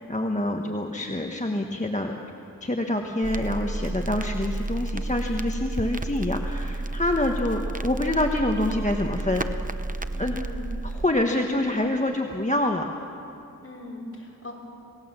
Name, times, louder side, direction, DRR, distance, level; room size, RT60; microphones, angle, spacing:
voice 1, 0.0-2.1 2.6-9.4 10.2-10.4 10.8-12.9, left 1 dB, 20° left, 2 dB, 1.3 m, -26 dB
Crackle, 3.2-11.1, right 2 dB, 25° right, 0.8 m, -31 dB
voice 2, 10.1-10.7 13.6-14.5, left 1 dB, 40° left, -2 dB, 5.3 m, -40 dB
27.5 x 18.0 x 7.4 m, 3.0 s
wide cardioid pair, 75°, 33 cm